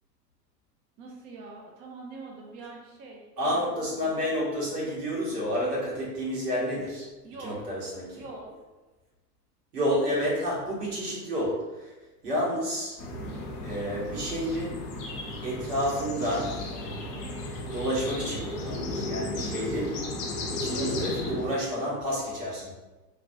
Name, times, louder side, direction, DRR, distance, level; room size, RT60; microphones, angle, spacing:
voice 1, 1.0-3.7 7.2-7.7 8.2-8.6 20.7-21.4, right 3 dB, 25° right, -1 dB, 0.3 m, -43 dB
voice 2, 3.4-7.1 7.4-8.2 9.7-11.9 12.2-13.0 13.6-14.8 15.4-16.6 17.7-20.0 20.5-22.7, equal, 75° right, -6 dB, 1.5 m, -30 dB
sound 1, 13.0-21.6, left 2 dB, 35° left, 0.6 m, -34 dB
3.1 x 2.4 x 2.6 m, 1.1 s
figure-of-eight pair, 85°, 49 cm